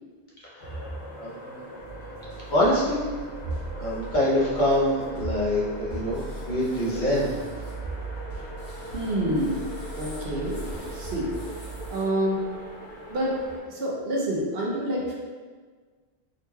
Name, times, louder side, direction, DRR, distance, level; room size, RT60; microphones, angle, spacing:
voice 1, 0.4-1.9 2.4-3.0 3.8-7.3, left 1 dB, 50° left, -7 dB, 0.8 m, -25 dB
sound 1, 0.6-13.6, equal, 90° left, 1.0 m, -41 dB
sound 2, 1.8-11.9, right 3 dB, 70° left, 1.9 m, -40 dB
sound 3, 6.1-7.8 8.4-12.0, left 1 dB, 20° left, 1.4 m, -49 dB
voice 2, 8.9-9.6 10.0-10.6 10.9-11.3 11.9-12.4 13.1-13.4 13.7-15.1, right 1 dB, 65° right, -3 dB, 0.8 m, -27 dB
3.8 x 3.1 x 2.2 m, 1.5 s
omnidirectional pair, 1.1 m